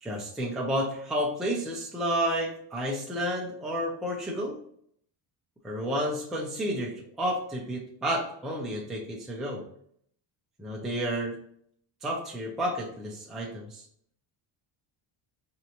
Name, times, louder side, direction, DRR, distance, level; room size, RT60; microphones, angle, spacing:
voice 1, 0.0-4.6 5.6-9.7 10.6-11.4 12.0-13.8, equal, ahead, -2 dB, 0.5 m, -31 dB
4.4 x 2.7 x 2.9 m, 0.65 s
cardioid pair, 150°, 48 cm